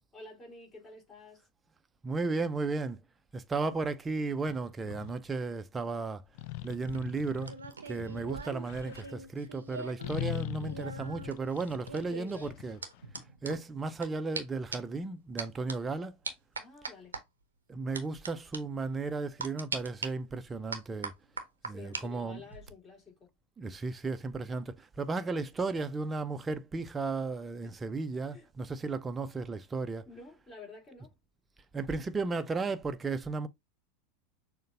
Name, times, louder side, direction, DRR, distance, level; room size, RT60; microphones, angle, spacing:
voice 1, 0.1-1.5 10.3-10.5 12.1-12.7 16.6-17.2 21.6-23.3 27.6-27.8 28.3-28.5 30.1-31.2, left 3 dB, 25° left, 2.5 m, -50 dB
voice 2, 2.0-3.0 3.3-6.2 6.6-7.5 7.9-12.8 13.4-16.1 17.7-21.1 21.6-22.4 23.6-30.1 31.7-33.5, right 3 dB, 20° right, 0.5 m, -34 dB
sound 1, 4.5-5.2 6.3-9.1 10.0-13.2, left 18 dB, 55° left, 0.3 m, -41 dB
sound 2, 6.7-10.1 10.3-14.1 14.3-14.4 14.7-15.0 15.4-15.7 16.2-17.2 17.9-18.3 18.5-18.6 19.4-20.1 20.7-22.0 22.4-22.7, right 4 dB, 80° right, 0.7 m, -41 dB
6.4 x 2.2 x 2.6 m
figure-of-eight pair, 85°, 0 cm